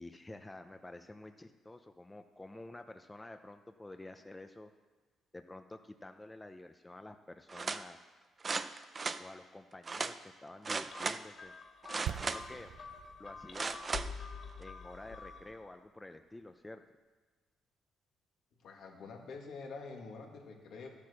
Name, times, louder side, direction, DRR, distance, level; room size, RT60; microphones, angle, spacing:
voice 1, 0.0-4.7 5.3-8.1 9.2-11.5 11.9-12.7 13.2-13.8 14.6-16.8, left 2 dB, 15° left, 7 dB, 0.7 m, -50 dB
sound 1, 7.5-7.8 8.4-9.2 9.9-10.1 10.6-11.2 11.8-12.6 13.5-14.1 14.6-14.7, right 4 dB, 35° right, 0.6 m, -36 dB
sound 2, 10.9-15.6, left 4 dB, 50° left, 1.3 m, -47 dB
sound 3, 12.1-16.0 16.2-16.4, right 11 dB, 75° right, 0.3 m, -46 dB
voice 2, 18.6-20.9, left 4 dB, 75° left, 1 dB, 2.4 m, -46 dB
12.5 x 8.5 x 6.5 m, 1.4 s
cardioid pair, 90°, 0 cm